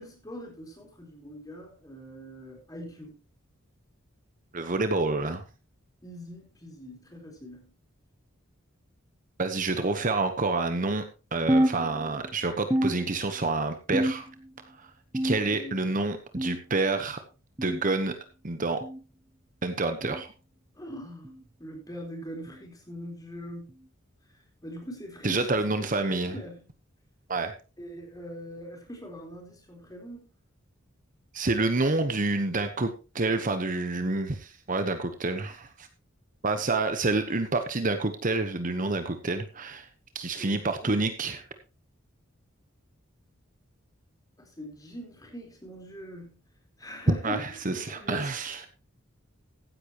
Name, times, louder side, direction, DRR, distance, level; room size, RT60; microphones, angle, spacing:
voice 1, 0.0-3.2 6.0-7.7 15.3-16.0 20.7-23.7 24.6-26.7 27.8-30.3 40.4-41.1 44.4-46.4 46.8-48.3, equal, 20° left, 4.2 m, -42 dB
voice 2, 4.5-5.4 9.4-11.0 11.3-14.3 14.8-14.9 15.2-17.2 17.6-18.1 18.4-18.8 19.6-20.3 25.2-26.3 27.3-27.5 31.3-32.9 33.1-35.9 36.4-39.9 40.1-41.4 47.2-48.6, right 3 dB, 40° right, 1.1 m, -28 dB
sound 1, 11.5-12.3 12.7-13.5 13.9-14.5 15.1-15.8 16.4-16.7 17.6-17.8 18.8-19.0 20.0-20.2 21.2-21.4 22.5-22.7 23.7-23.9 24.9-25.0 26.1-26.2, right 1 dB, 15° right, 0.6 m, -29 dB
15.0 x 10.0 x 3.0 m
head